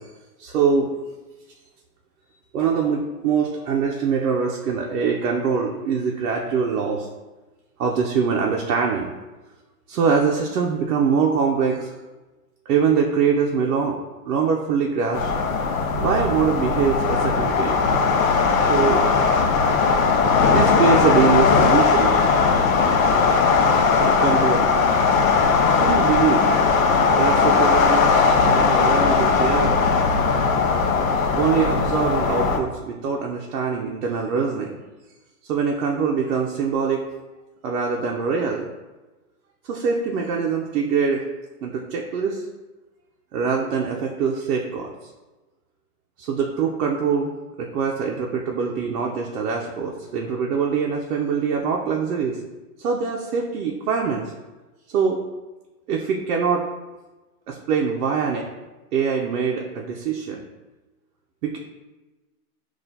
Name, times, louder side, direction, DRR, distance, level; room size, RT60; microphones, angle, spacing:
voice 1, 0.4-0.9 2.5-7.1 7.8-9.1 9.9-11.9 12.7-14.0 14.3-15.3 16.0-17.8 18.7-19.0 20.5-22.1 24.0-24.7 25.7-26.5 27.1-28.1 28.5-29.7 31.3-34.8 35.5-37.0 37.6-38.7 39.6-41.2 41.6-42.4 43.3-44.9 46.2-47.3 47.6-52.4 52.8-54.3 54.9-55.2 55.9-56.7 57.5-58.5 58.9-60.4 61.4-61.6, right 6 dB, 65° right, -1 dB, 0.6 m, -23 dB
sound 1, 15.1-32.6, left 5 dB, 60° left, 0.6 m, -18 dB
5.9 x 2.4 x 2.7 m, 1.1 s
hypercardioid pair, 140°, 47 cm